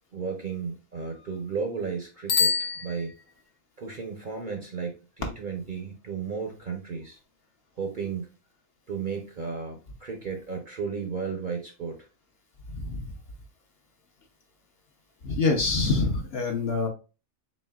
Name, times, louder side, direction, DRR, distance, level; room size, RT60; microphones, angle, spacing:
voice 1, 0.1-3.1 3.8-7.2 7.8-8.3 8.9-12.0, right 5 dB, 45° right, 2 dB, 0.7 m, -34 dB
Bicycle bell, 2.2-3.6, left 5 dB, 90° left, 1.4 m, -27 dB
voice 2, 12.7-13.1 15.2-16.9, left 3 dB, 55° left, 2 dB, 0.8 m, -26 dB
4.2 x 3.7 x 2.3 m, 0.32 s
omnidirectional pair, 1.5 m